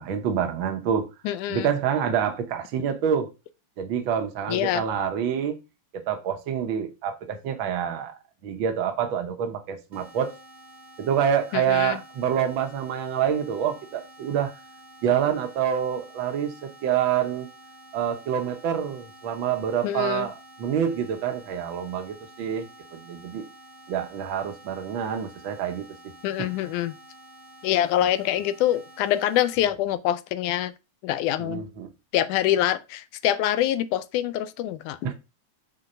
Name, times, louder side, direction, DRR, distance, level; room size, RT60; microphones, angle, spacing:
voice 1, 0.0-1.1 1.5-3.3 3.8-5.6 5.9-8.1 8.4-10.3 11.0-14.5 15.0-17.5 17.9-23.4 23.9-25.8 26.4-26.5 31.4-31.9 35.0-35.1, right 8 dB, 75° right, 1.1 m, -27 dB
voice 2, 1.2-1.7 4.5-4.8 11.5-12.0 19.8-20.3 26.2-26.9 27.6-30.7 31.0-31.6 32.1-35.0, left 12 dB, 85° left, 2.1 m, -25 dB
sound 1, 9.9-29.6, right 1 dB, 45° right, 0.9 m, -49 dB
6.3 x 3.8 x 5.4 m
omnidirectional pair, 3.5 m